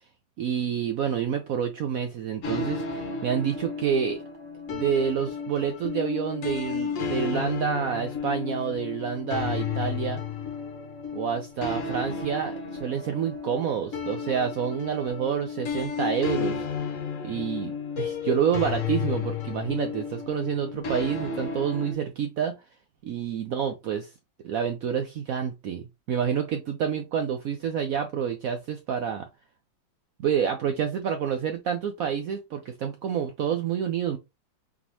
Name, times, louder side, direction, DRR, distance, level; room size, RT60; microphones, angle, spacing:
voice 1, 0.4-4.2 4.7-10.2 11.1-16.7 17.2-22.6 23.0-24.1 24.4-29.3 30.2-34.2, right 8 dB, 85° right, 0.7 m, -28 dB
sound 1, 2.4-21.9, left 5 dB, 55° left, 0.9 m, -33 dB
4.0 x 3.6 x 2.8 m
omnidirectional pair, 2.2 m